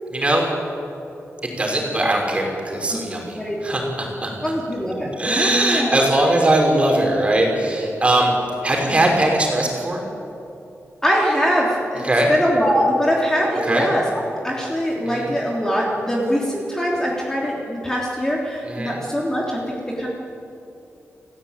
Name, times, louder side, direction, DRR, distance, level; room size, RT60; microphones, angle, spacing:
voice 1, 0.1-0.5 1.6-4.5 5.2-8.3 8.6-10.0 12.0-12.3 13.7-13.9 15.1-15.3 18.6-19.0, right 1 dB, 25° right, 0 dB, 5.4 m, -20 dB
voice 2, 4.4-6.0 11.0-20.1, equal, 10° left, -3 dB, 3.5 m, -22 dB
29.5 x 16.0 x 9.0 m, 2.8 s
wide cardioid pair, 160°, 5 cm